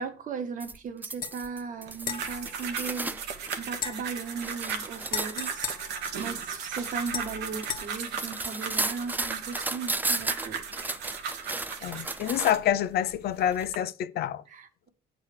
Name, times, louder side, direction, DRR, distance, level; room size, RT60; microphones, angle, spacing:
voice 1, 0.0-5.8 6.2-10.6 14.5-14.9, right 5 dB, 50° right, 1.5 m, -37 dB
sound 1, 0.6-3.6 4.0-12.7 13.5-13.7, right 2 dB, 10° right, 0.4 m, -34 dB
sound 2, 1.2-1.4 2.0-3.3 3.7-6.6 7.1-7.8, left 8 dB, 55° left, 1.3 m, -38 dB
sound 3, 1.9-12.7 13.3-13.8, right 6 dB, 80° right, 1.5 m, -37 dB
voice 2, 11.8-14.4, left 10 dB, 70° left, 0.7 m, -27 dB
8.1 x 4.1 x 6.6 m
cardioid pair, 110°, 17 cm